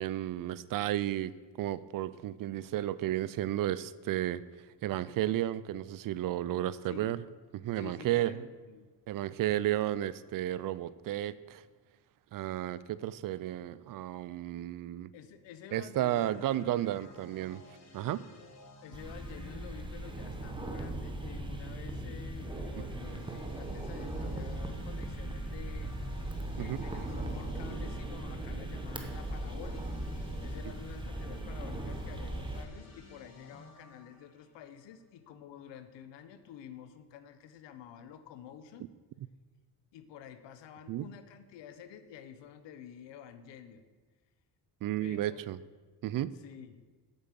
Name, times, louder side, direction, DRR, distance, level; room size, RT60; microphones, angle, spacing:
voice 1, 0.0-4.4 4.8-7.2 7.5-8.5 9.1-11.6 12.3-15.1 15.7-17.6 17.9-18.2 26.6-26.8 40.9-41.1 44.8-45.6 46.0-46.3, right 13 dB, 55° right, 17 dB, 0.5 m, -33 dB
voice 2, 6.8-7.2 7.8-8.9 15.1-16.4 18.8-26.0 26.5-30.0 30.4-38.9 39.9-43.8 45.0-45.4 46.4-46.8, left 8 dB, 85° left, 11 dB, 1.1 m, -50 dB
sound 1, 16.1-21.0 22.1-35.2, left 2 dB, 40° left, 1.7 m, -54 dB
sound 2, 18.9-32.6, right 1 dB, 10° right, 1.0 m, -38 dB
8.8 x 8.1 x 7.4 m, 1.3 s
cardioid pair, 150°, 42 cm